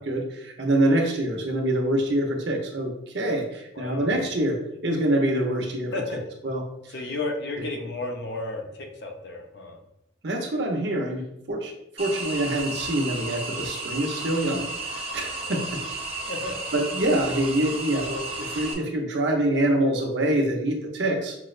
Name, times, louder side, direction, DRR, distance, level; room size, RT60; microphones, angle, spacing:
voice 1, 0.0-5.9 6.4-6.6 10.2-15.8 16.7-21.4, right 1 dB, 70° right, 1 dB, 0.7 m, -25 dB
voice 2, 3.7-4.1 5.9-6.2 6.9-9.8 15.4-15.6 16.3-16.5, left 2 dB, 60° left, 3 dB, 0.6 m, -33 dB
sound 1, 12.0-18.7, right 3 dB, 30° right, 0.6 m, -33 dB
5.9 x 2.1 x 2.4 m, 0.81 s
head